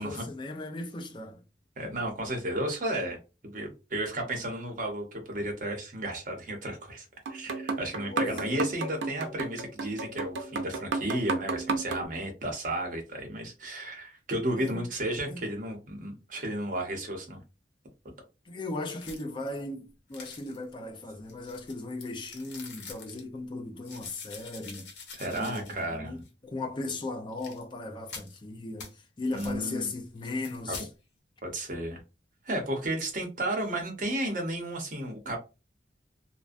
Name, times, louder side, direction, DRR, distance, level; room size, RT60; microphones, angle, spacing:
voice 1, 0.0-1.4 8.1-8.6 14.5-14.9 15.3-15.5 18.5-24.9 25.3-30.9, left 2 dB, 25° left, 0.4 m, -37 dB
voice 2, 1.8-3.2 3.4-17.4 25.1-26.2 29.3-29.9 30.7-30.8 31.4-32.0 32.4-35.4, right 1 dB, 50° right, 0.8 m, -33 dB
sound 1, 7.3-12.1, right 4 dB, 85° right, 0.5 m, -33 dB
sound 2, 19.0-19.5 20.1-20.7 21.3-23.2 23.8-25.9 26.2-26.3 27.3-27.6 28.1-28.4 28.8-28.9 29.3-29.6 30.2-30.9, left 5 dB, 75° left, 0.8 m, -46 dB
2.5 x 2.1 x 2.4 m
head